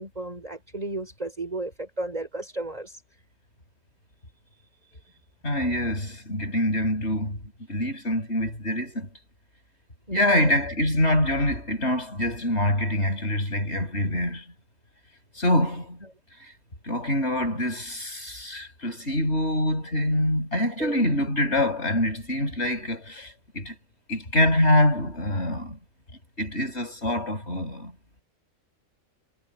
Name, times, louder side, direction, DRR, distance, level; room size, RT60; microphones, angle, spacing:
voice 1, 0.0-3.0 4.5-5.2 10.1-10.5 20.8-21.0, right 2 dB, 30° right, 5.1 m, -34 dB
voice 2, 5.4-7.4 7.7-9.1 10.1-14.4 15.4-16.0 16.8-23.7 24.1-25.8 26.4-27.9, left 1 dB, 55° left, 7.6 m, -25 dB
omnidirectional pair, 1.3 m